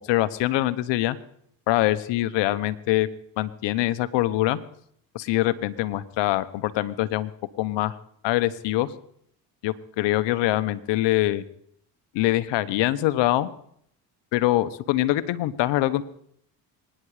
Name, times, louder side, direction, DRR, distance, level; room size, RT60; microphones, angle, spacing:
voice 1, 0.1-1.2 1.7-3.1 3.4-4.6 5.1-7.3 7.6-8.0 8.2-8.9 9.6-11.4 12.1-13.5 14.3-16.0, left 16 dB, 75° left, 14 dB, 1.1 m, -24 dB
23.5 x 10.0 x 5.0 m, 0.68 s
supercardioid pair, 70°, 43 cm